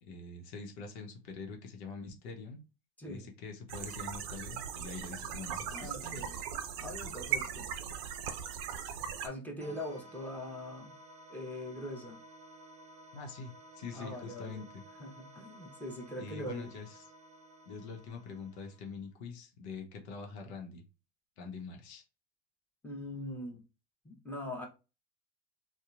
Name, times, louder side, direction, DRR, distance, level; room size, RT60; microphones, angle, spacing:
voice 1, 0.0-2.6 3.1-6.3 13.1-14.8 16.2-17.0 17.7-20.8 21.4-22.0, left 4 dB, 75° left, 0.9 m, -44 dB
voice 2, 3.0-3.3 5.7-6.4 6.8-7.7 9.2-11.0 11.3-12.2 13.9-14.7 15.0-16.7 22.8-23.6 24.0-24.7, left 1 dB, 5° left, 1.0 m, -42 dB
sound 1, 3.7-9.3, right 8 dB, 65° right, 0.5 m, -38 dB
sound 2, 9.6-19.0, right 1 dB, 20° right, 0.8 m, -54 dB
2.8 x 2.2 x 2.4 m
hypercardioid pair, 95°, 33 cm